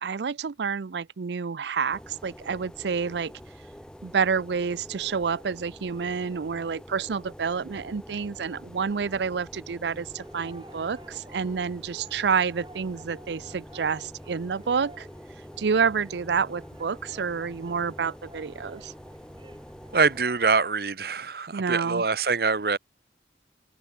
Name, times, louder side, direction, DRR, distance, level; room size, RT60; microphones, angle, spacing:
voice 1, 0.0-3.3 4.0-15.1 15.6-18.9 21.5-22.0, right 6 dB, 75° right, 0.5 m, -28 dB
sound 1, 1.9-20.2, equal, 5° left, 0.8 m, -46 dB
sound 2, 10.2-20.7, right 2 dB, 25° right, 4.5 m, -52 dB
voice 2, 19.9-22.8, right 4 dB, 55° right, 0.9 m, -24 dB
head